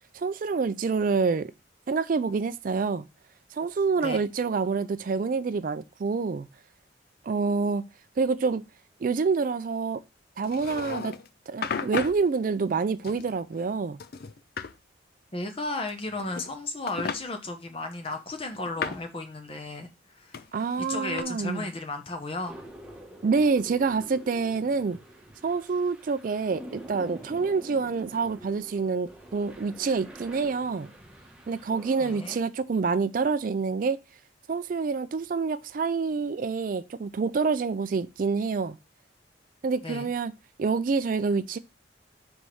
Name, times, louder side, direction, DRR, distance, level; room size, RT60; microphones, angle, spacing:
voice 1, 0.1-1.5 1.9-3.0 3.5-6.5 7.2-7.8 8.2-8.7 9.0-10.0 10.4-11.2 11.5-14.0 20.5-21.7 23.2-25.0 25.4-30.9 31.5-34.0 34.5-38.8 39.6-40.3 40.6-41.6, right 4 dB, 45° right, 0.3 m, -27 dB
sound 1, 10.4-11.3 11.6-12.2 13.0-13.7 14.0-14.7 15.9-16.6 16.9-17.2 18.1-19.1 20.3-21.2, left 5 dB, 55° left, 0.4 m, -35 dB
voice 2, 15.3-20.4 20.8-22.6 32.0-32.4 39.8-40.1, left 2 dB, 30° left, 1.0 m, -34 dB
sound 2, 22.5-32.4, equal, 5° right, 1.3 m, -46 dB
4.8 x 4.4 x 5.3 m
head